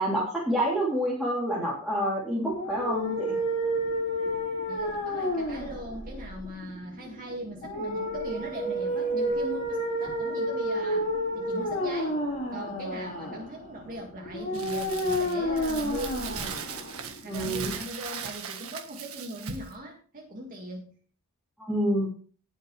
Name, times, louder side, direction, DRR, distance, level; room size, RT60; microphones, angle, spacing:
voice 1, 0.0-3.4 17.3-17.7 21.6-22.1, equal, ahead, -7 dB, 3.3 m, -28 dB
sound 1, 2.5-17.5, equal, 35° left, 3.9 m, -30 dB
voice 2, 4.7-11.0 11.3-12.2 12.5-16.4 17.2-20.9, equal, 40° right, -1 dB, 2.1 m, -40 dB
Crumpling crinkling, 14.5-19.7, right 6 dB, 70° right, 1.6 m, -38 dB
19.0 x 6.5 x 3.3 m, 0.44 s
head